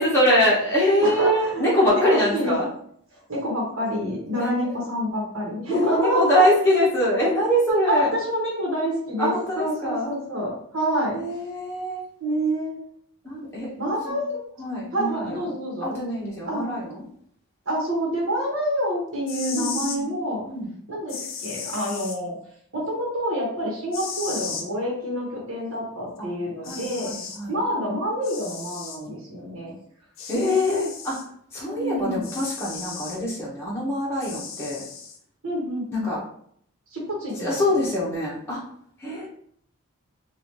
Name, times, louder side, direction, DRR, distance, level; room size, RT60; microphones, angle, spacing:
voice 1, 0.0-2.7 4.3-4.9 5.7-8.2 9.2-10.2 11.1-12.1 13.2-13.7 14.1-14.2 14.6-15.5 15.8-17.0 19.6-20.1 20.5-20.7 26.2-26.3 26.6-27.6 30.3-31.2 31.5-34.8 35.9-36.2 37.3-38.6 39.0-39.3, equal, 10° left, -7 dB, 0.9 m, -24 dB
voice 2, 1.0-2.5 3.3-6.4 7.9-11.2 12.2-12.7 13.8-14.4 14.9-15.9 16.4-16.7 17.6-20.4 20.9-22.3 22.7-27.1 27.5-29.7 30.4-30.7 31.7-32.2 35.4-36.1 36.9-37.5, equal, 65° right, -3 dB, 1.2 m, -27 dB
sound 1, 19.1-20.0 21.1-22.2 23.9-24.7 26.2-26.3 26.6-27.4 28.2-29.0 30.2-31.3 32.2-33.2 34.2-35.2, left 6 dB, 60° left, 0.6 m, -35 dB
3.9 x 2.5 x 3.1 m, 0.65 s
head